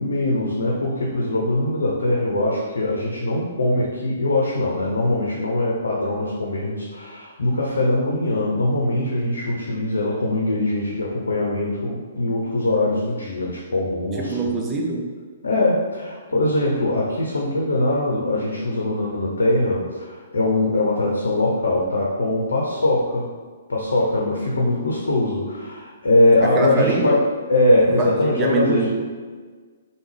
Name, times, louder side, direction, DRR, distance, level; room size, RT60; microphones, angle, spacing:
voice 1, 0.0-14.4 15.4-23.3 23.7-27.2 27.5-28.9, left 1 dB, 75° left, -2 dB, 0.6 m, -22 dB
voice 2, 14.2-15.1 26.5-27.2 28.0-29.0, right 3 dB, 20° right, -1 dB, 0.6 m, -23 dB
3.5 x 2.2 x 3.2 m, 1.5 s
figure-of-eight pair, 125°, 0 cm